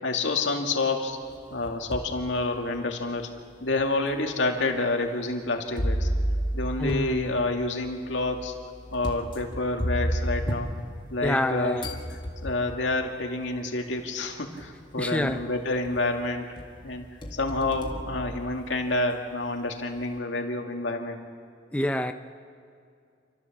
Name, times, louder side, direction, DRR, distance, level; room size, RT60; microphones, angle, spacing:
voice 1, 0.0-1.2 1.5-3.3 3.6-6.1 6.5-8.5 8.9-10.7 11.1-12.0 12.4-16.5 16.8-17.1 17.3-21.2, left 2 dB, 85° left, 2 dB, 2.2 m, -28 dB
sound 1, 1.3-2.2 2.8-2.9 3.8-3.9 5.8-11.5 11.8-12.8 14.0-14.1 14.6-15.0 15.4-16.2 16.6-18.9, equal, 25° left, 1.9 m, -32 dB
voice 2, 6.8-7.3 11.2-11.9 15.0-15.5 21.7-22.1, left 1 dB, 5° left, 6 dB, 0.5 m, -27 dB
29.0 x 13.0 x 7.3 m, 2.4 s
head